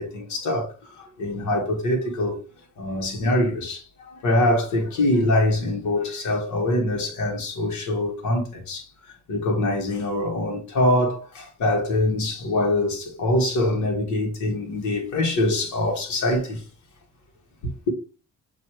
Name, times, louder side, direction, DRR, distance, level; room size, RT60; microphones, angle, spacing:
voice 1, 0.0-2.4 2.8-16.6 17.6-17.9, left 1 dB, 70° left, 1.6 m, -24 dB
6.3 x 2.8 x 2.9 m
cardioid pair, 90°, 30 cm